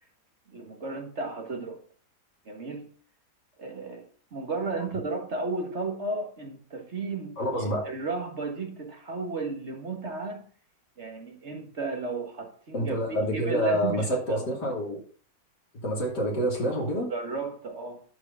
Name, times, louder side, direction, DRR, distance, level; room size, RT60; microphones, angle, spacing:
voice 1, 0.5-1.8 2.5-2.9 3.6-10.5 11.0-14.5 17.1-18.0, right 3 dB, 45° right, 1.8 m, -34 dB
voice 2, 7.4-7.9 12.7-15.0 15.8-17.1, equal, 85° left, 3.5 m, -27 dB
12.0 x 4.9 x 5.6 m
omnidirectional pair, 1.8 m